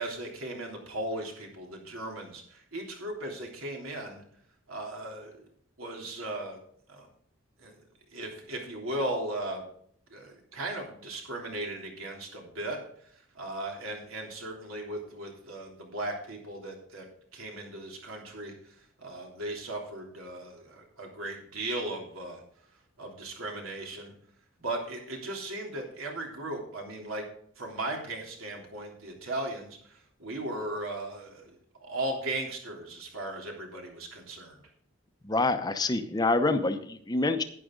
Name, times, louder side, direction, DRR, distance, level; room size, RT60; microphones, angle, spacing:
voice 1, 0.0-4.2 4.7-5.4 5.8-6.6 6.9-7.1 7.6-7.8 8.1-9.6 10.1-17.0 17.3-22.4 23.0-24.1 24.6-27.2 27.6-34.6, right 1 dB, 85° right, 0 dB, 3.3 m, -37 dB
voice 2, 35.2-37.4, left 2 dB, 20° left, 9 dB, 0.7 m, -26 dB
11.0 x 9.9 x 3.8 m, 0.64 s
head